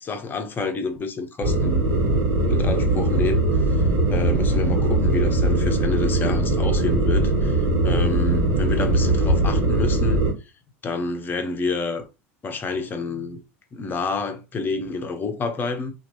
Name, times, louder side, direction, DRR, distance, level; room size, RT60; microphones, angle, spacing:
voice 1, 0.0-1.8 2.5-3.8 4.1-10.2 10.8-12.0 12.4-13.4 13.7-15.9, left 3 dB, 30° left, 0.8 m, -28 dB
sound 1, 1.4-10.3, right 2 dB, 55° right, 1.7 m, -20 dB
2.9 x 2.5 x 2.8 m
hypercardioid pair, 90°, 7 cm